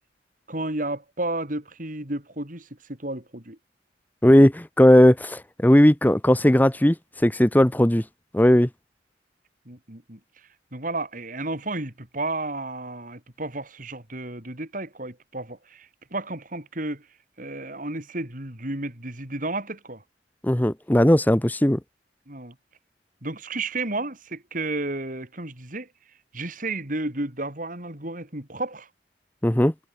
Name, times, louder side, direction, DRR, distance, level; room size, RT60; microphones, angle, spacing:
voice 1, 0.5-3.6 9.6-17.1 17.4-20.0 22.3-22.5 23.2-25.9 26.3-28.9, right 2 dB, 50° right, 4.7 m, -32 dB
voice 2, 4.2-7.0 7.2-8.0 8.3-8.7 20.4-21.8 29.4-29.7, equal, 10° left, 0.8 m, -17 dB
head